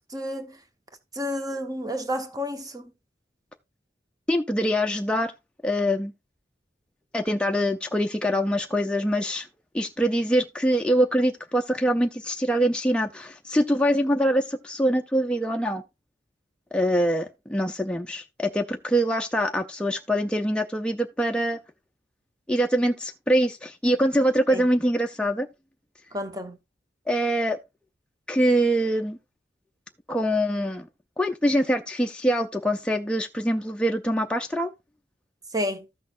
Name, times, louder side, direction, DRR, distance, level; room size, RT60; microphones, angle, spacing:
voice 1, 0.1-0.6 1.1-2.9 24.5-24.6 26.1-26.6 35.5-35.9, left 1 dB, 20° right, 1.0 m, -30 dB
voice 2, 4.3-5.3 5.6-6.1 7.1-9.5 9.7-15.8 16.7-21.6 22.5-25.5 27.1-27.6 28.3-29.2 30.1-30.9 31.2-34.7, equal, 5° left, 0.5 m, -24 dB
14.0 x 6.3 x 2.5 m
head